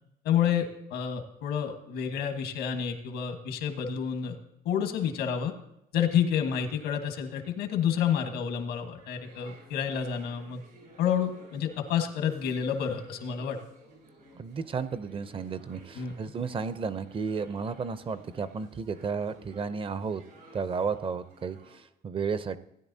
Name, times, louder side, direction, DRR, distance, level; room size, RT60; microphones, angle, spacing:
voice 1, 0.2-4.4 4.6-5.5 5.9-10.6 11.0-13.6 15.9-16.1, left 8 dB, 90° left, 6 dB, 1.5 m, -29 dB
sound 1, 8.9-21.8, right 1 dB, 80° right, 4.5 m, -55 dB
voice 2, 14.3-20.2 20.5-22.6, right 5 dB, 30° right, 14 dB, 0.6 m, -33 dB
16.0 x 10.0 x 2.7 m, 0.82 s
cardioid pair, 110°, 17 cm